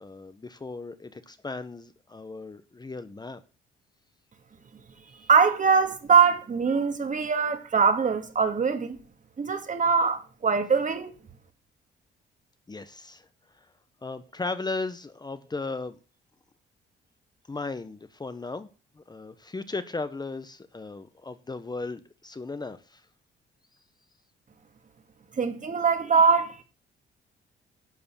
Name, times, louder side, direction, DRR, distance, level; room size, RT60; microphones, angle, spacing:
voice 1, 0.0-3.4 12.7-13.3 14.0-16.0 17.5-18.7 19.0-23.0, left 3 dB, 20° left, 1.0 m, -36 dB
voice 2, 5.3-9.0 9.4-11.1 25.4-26.6, right 5 dB, 40° right, 2.1 m, -22 dB
11.0 x 6.8 x 7.0 m
cardioid pair, 90°, 20 cm